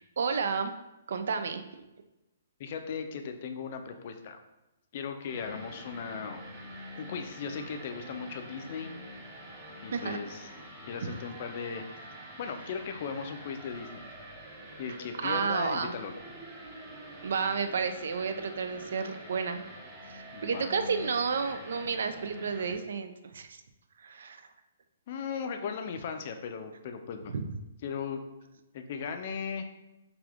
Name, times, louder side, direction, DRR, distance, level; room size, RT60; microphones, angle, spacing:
voice 1, 0.2-0.7 1.1-1.9 9.9-10.2 15.2-15.9 17.2-19.6 20.4-23.6 24.0-24.4 27.3-27.4, right 5 dB, 70° right, 8 dB, 0.3 m, -31 dB
voice 2, 2.6-4.4 4.9-6.4 7.0-8.9 9.8-10.5 10.8-11.8 12.4-14.1 14.8-16.1 20.3-20.8 25.1-27.3 27.8-28.2 28.7-29.7, left 6 dB, 50° left, 6 dB, 0.4 m, -37 dB
sound 1, 5.3-22.7, equal, 25° right, 0.9 m, -46 dB
3.3 x 2.5 x 2.4 m, 0.97 s
hypercardioid pair, 135°, 0 cm